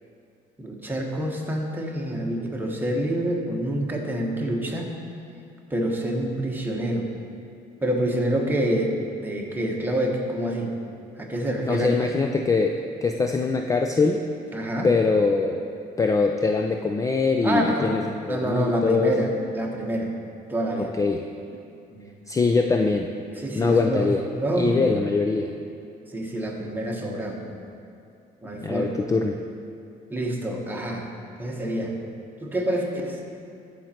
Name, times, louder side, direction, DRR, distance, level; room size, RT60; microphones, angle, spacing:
voice 1, 0.6-4.9 5.7-7.1 7.8-8.9 9.2-10.7 11.2-12.1 14.5-14.9 17.4-17.9 18.3-20.1 20.5-20.9 21.9-22.1 23.4-25.0 26.1-27.5 28.4-29.0 30.1-31.1 31.4-31.9 32.4-33.2, right 1 dB, 10° right, -1 dB, 1.3 m, -27 dB
voice 2, 11.6-14.3 14.8-15.6 16.0-19.1 20.8-21.3 22.3-23.1 23.6-24.3 24.6-25.5 28.6-29.4, left 4 dB, 20° left, 4 dB, 0.4 m, -23 dB
14.0 x 5.2 x 4.5 m, 2.6 s
cardioid pair, 110°, 17 cm